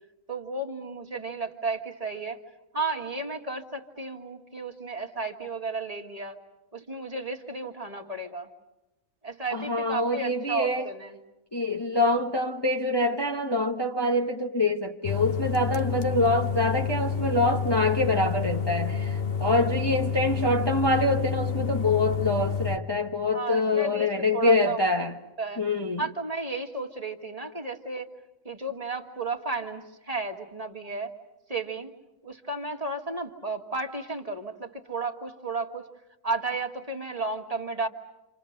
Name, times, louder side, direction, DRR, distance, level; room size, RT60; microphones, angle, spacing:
voice 1, 0.3-2.4 2.7-6.4 6.7-8.5 9.2-11.2 23.3-24.8 25.4-25.6 26.0-28.1 28.5-31.1 31.5-31.9 32.2-35.9 36.2-37.9, right 3 dB, 25° right, 1.8 m, -33 dB
voice 2, 9.5-10.9 11.5-25.1 25.6-26.1, left 2 dB, 20° left, 1.1 m, -25 dB
sound 1, 15.0-22.8, left 6 dB, 45° left, 1.2 m, -29 dB
29.5 x 27.5 x 6.6 m
omnidirectional pair, 1.5 m